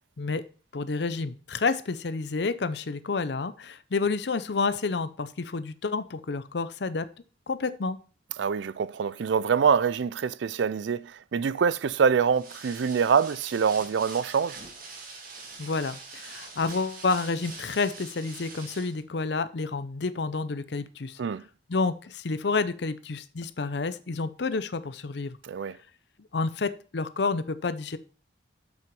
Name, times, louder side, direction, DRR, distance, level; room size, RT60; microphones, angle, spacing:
voice 1, 0.7-7.1 7.5-8.0 15.6-21.2 21.7-25.4 26.3-28.0, left 4 dB, 65° left, 0.6 m, -29 dB
voice 2, 8.4-14.6 21.2-21.4 25.4-25.8, right 6 dB, 70° right, 0.4 m, -25 dB
sound 1, 12.3-19.0, right 3 dB, 50° right, 2.1 m, -44 dB
7.7 x 5.9 x 5.3 m
head